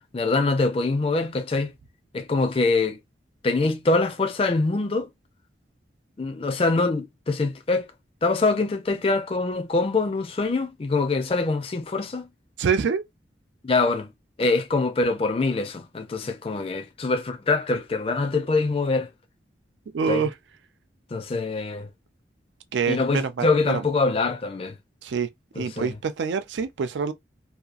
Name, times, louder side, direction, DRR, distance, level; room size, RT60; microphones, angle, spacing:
voice 1, 0.1-1.7 2.1-3.0 3.4-5.1 6.2-7.9 8.2-12.3 13.6-14.1 14.4-19.1 20.1-20.2 21.1-21.9 22.9-24.8 25.6-25.9, left 3 dB, 30° left, 0.4 m, -24 dB
voice 2, 12.6-13.0 19.9-20.3 22.7-23.8 25.0-25.3 25.6-27.1, right 6 dB, 80° right, 0.4 m, -26 dB
2.8 x 2.3 x 2.4 m
head